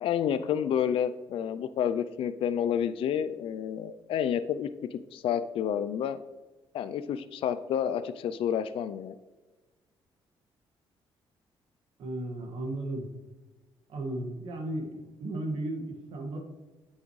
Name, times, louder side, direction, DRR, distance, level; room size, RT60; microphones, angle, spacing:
voice 1, 0.0-6.2 6.7-9.2, left 9 dB, 70° left, 12 dB, 0.4 m, -30 dB
voice 2, 12.0-13.1 13.9-16.4, right 1 dB, 70° right, 1 dB, 1.7 m, -35 dB
8.6 x 6.3 x 3.1 m, 1.2 s
cardioid pair, 100°, 10 cm